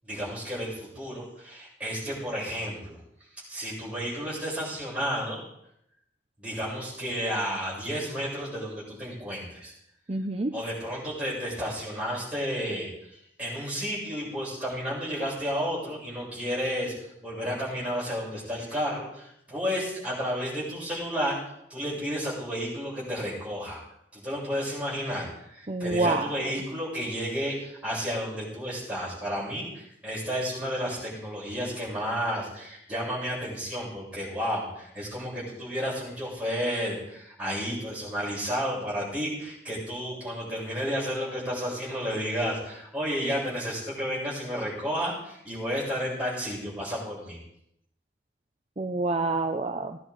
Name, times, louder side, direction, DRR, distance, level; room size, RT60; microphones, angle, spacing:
voice 1, 0.0-3.0 3.5-5.4 6.4-9.7 10.5-16.9 17.2-21.4 21.7-23.8 24.1-47.4, equal, 10° right, -7 dB, 7.9 m, -32 dB
voice 2, 10.1-10.5 25.7-26.3 48.8-50.0, right 2 dB, 35° right, 5 dB, 0.7 m, -27 dB
18.5 x 10.5 x 4.9 m, 0.76 s
head